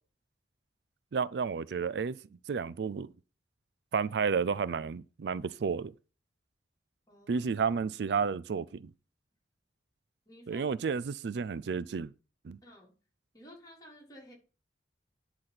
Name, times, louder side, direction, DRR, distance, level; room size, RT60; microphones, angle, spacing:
voice 1, 1.1-2.2 2.5-3.1 3.9-5.9 7.3-8.9 10.5-12.1 12.4-12.6, right 5 dB, 65° right, 0.4 m, -31 dB
voice 2, 7.1-7.5 10.3-10.7 12.6-12.9 13.3-14.3, equal, 20° left, 3.8 m, -53 dB
10.5 x 4.1 x 5.9 m
head